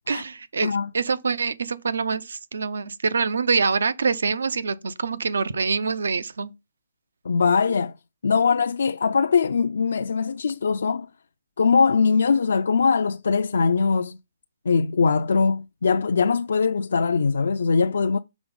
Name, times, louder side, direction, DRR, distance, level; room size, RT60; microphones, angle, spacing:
voice 1, 0.1-6.5, right 4 dB, 90° right, 0.7 m, -25 dB
voice 2, 7.2-7.9 8.2-11.1 11.6-14.2 14.7-18.2, left 5 dB, 85° left, 0.4 m, -21 dB
6.1 x 4.0 x 5.2 m
hypercardioid pair, 165°, 0 cm